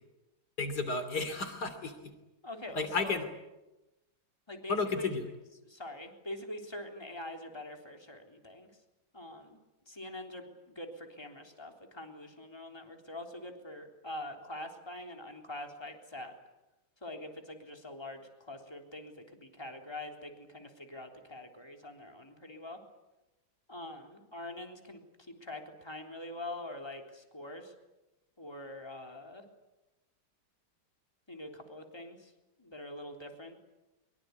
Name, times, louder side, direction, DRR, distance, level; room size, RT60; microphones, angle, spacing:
voice 1, 0.6-2.1 2.7-3.2 4.7-5.3, left 4 dB, 50° left, 10 dB, 3.4 m, -33 dB
voice 2, 2.4-3.2 4.5-5.2 5.6-8.7 9.1-9.6 9.9-16.3 17.0-22.8 23.7-27.7 28.4-29.4 31.3-32.3 32.6-33.6, left 1 dB, 10° left, 3 dB, 3.5 m, -44 dB
24.0 x 23.5 x 9.6 m, 1.0 s
omnidirectional pair, 2.2 m